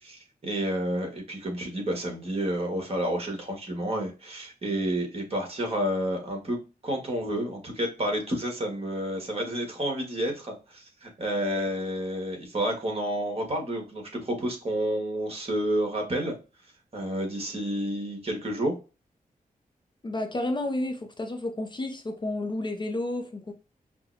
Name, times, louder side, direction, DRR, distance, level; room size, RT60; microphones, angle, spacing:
voice 1, 0.0-6.6 6.8-16.4 16.9-18.7, equal, 40° right, 1.7 m, -30 dB
voice 2, 20.0-23.5, left 1 dB, 30° left, 0.5 m, -31 dB
5.5 x 2.2 x 2.7 m
wide cardioid pair, 85°, 15 cm